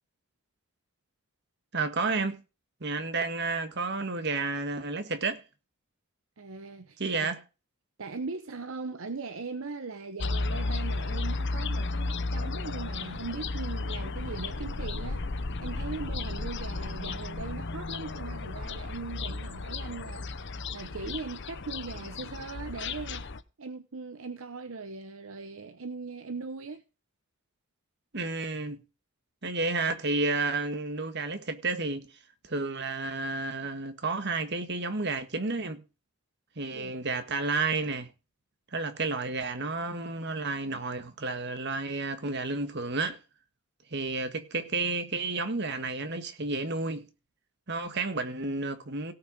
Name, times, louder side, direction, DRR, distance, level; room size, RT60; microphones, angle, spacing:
voice 1, 1.7-2.4 2.8-5.4 7.0-7.4 28.1-28.8 29.4-32.2 32.4-35.8 36.5-38.1 38.7-43.2 43.9-47.0 47.7-49.1, right 3 dB, 50° right, 1.6 m, -31 dB
voice 2, 6.4-7.3 8.0-15.2 15.6-23.3 23.6-26.8 36.7-37.0, right 4 dB, 70° right, 0.8 m, -40 dB
sound 1, 10.2-23.4, left 3 dB, 55° left, 0.8 m, -34 dB
17.5 x 5.9 x 5.1 m
head